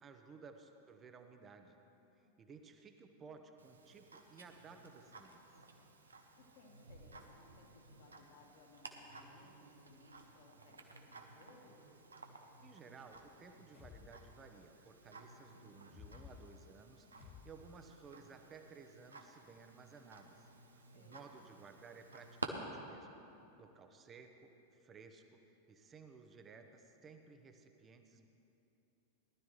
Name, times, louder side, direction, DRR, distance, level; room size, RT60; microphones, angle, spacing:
voice 1, 0.0-1.8 2.2-5.4 12.6-23.2 23.6-25.4 25.7-28.3, right 5 dB, 25° right, 6 dB, 1.0 m, -57 dB
Tick-tock, 3.6-22.5, right 4 dB, 75° right, 0.9 m, -54 dB
voice 2, 6.4-11.9 20.9-21.4, left 3 dB, 50° left, 1 dB, 2.0 m, -64 dB
sound 1, 13.1-14.9 15.8-18.1, left 8 dB, 25° left, 0.5 m, -58 dB
19.0 x 12.0 x 3.2 m, 2.9 s
figure-of-eight pair, 90°, 0 cm